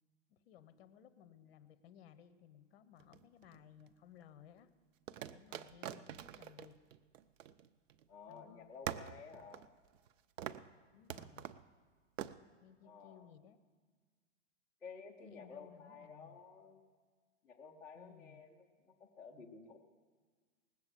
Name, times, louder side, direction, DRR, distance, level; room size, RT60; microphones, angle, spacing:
voice 1, 0.3-4.7 5.3-6.8 8.3-8.7 10.9-11.5 12.6-13.6 15.2-16.4 17.9-18.4, left 9 dB, 55° left, 13 dB, 0.9 m, -60 dB
sound 1, 3.0-3.9 5.1-8.0 8.3-8.4 8.9-10.1 10.4-10.7 11.1-11.6 12.2-12.4, right 10 dB, 80° right, 0.7 m, -45 dB
voice 2, 8.1-9.7 12.8-13.3 14.8-16.8 17.4-19.8, left 5 dB, 5° left, -2 dB, 0.4 m, -53 dB
18.5 x 7.7 x 7.5 m, 1.5 s
hypercardioid pair, 150°, 37 cm